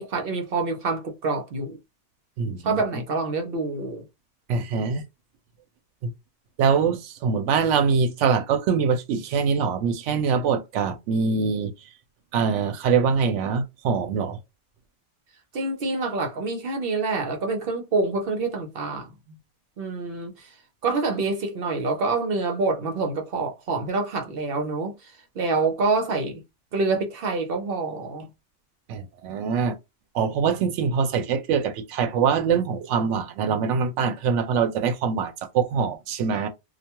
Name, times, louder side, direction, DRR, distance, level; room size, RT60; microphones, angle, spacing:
voice 1, 0.0-1.8 2.6-4.1 15.5-19.1 19.8-20.5 20.8-26.4 26.7-28.3, right 3 dB, 60° right, 0.8 m, -26 dB
voice 2, 2.4-2.8 4.5-5.0 6.0-6.1 6.6-11.7 12.3-14.4 28.9-29.7 30.1-36.5, right 6 dB, 85° right, 0.9 m, -23 dB
2.3 x 2.2 x 2.8 m
omnidirectional pair, 1.2 m